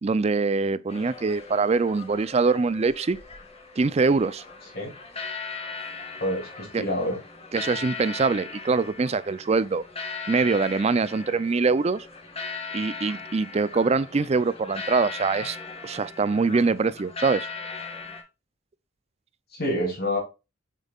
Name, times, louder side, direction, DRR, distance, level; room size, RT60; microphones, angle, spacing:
voice 1, 0.0-3.2 3.8-4.4 6.7-6.8 7.5-9.8 10.3-12.1 12.7-15.6 15.8-17.5, right 4 dB, 30° right, 0.4 m, -23 dB
sound 1, 0.9-18.2, left 4 dB, 30° left, 1.8 m, -39 dB
voice 2, 6.2-7.2 19.5-20.2, left 1 dB, 50° left, 2.8 m, -27 dB
7.4 x 5.4 x 2.4 m
head